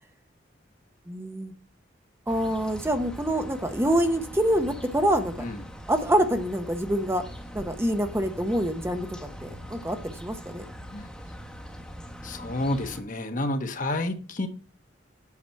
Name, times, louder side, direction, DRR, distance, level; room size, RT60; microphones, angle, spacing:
voice 1, 1.1-1.5 2.3-5.5 5.9-7.2 7.5-9.1 9.4-10.6, right 1 dB, 15° right, 0.8 m, -26 dB
sound 1, 2.3-13.0, equal, 5° left, 1.1 m, -42 dB
voice 2, 12.2-14.5, left 1 dB, 45° left, 1.1 m, -29 dB
8.5 x 5.9 x 6.4 m
head